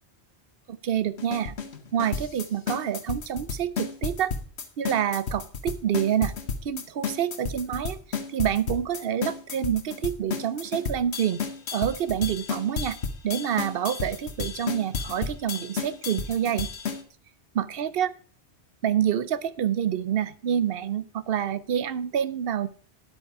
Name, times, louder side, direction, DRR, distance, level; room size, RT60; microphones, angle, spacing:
voice 1, 0.7-1.5 1.9-4.3 4.8-6.3 6.6-11.4 11.7-13.0 13.2-16.7 17.5-18.1 18.8-22.7, right 9 dB, 65° right, 15 dB, 0.8 m, -27 dB
sound 1, 1.2-17.0, left 5 dB, 85° left, 1.3 m, -32 dB
10.0 x 8.3 x 4.6 m, 0.42 s
omnidirectional pair, 1.1 m